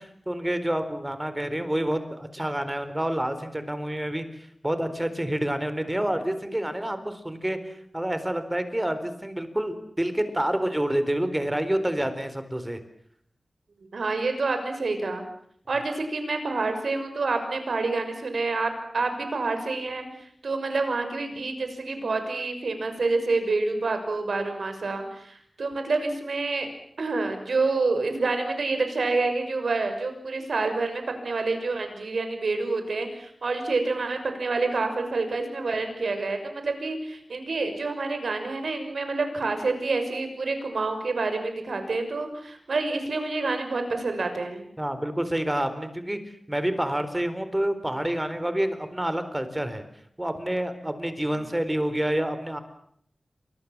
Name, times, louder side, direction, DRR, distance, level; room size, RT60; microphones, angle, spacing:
voice 1, 0.0-4.3 4.6-7.6 7.9-12.8 44.8-46.2 46.5-49.8 50.2-52.6, right 1 dB, 15° right, 10 dB, 4.2 m, -28 dB
voice 2, 13.9-15.2 15.7-20.1 20.4-26.7 27.0-44.6, right 3 dB, 80° right, 7 dB, 6.2 m, -28 dB
29.0 x 25.0 x 7.5 m, 0.68 s
wide cardioid pair, 80°, 0 cm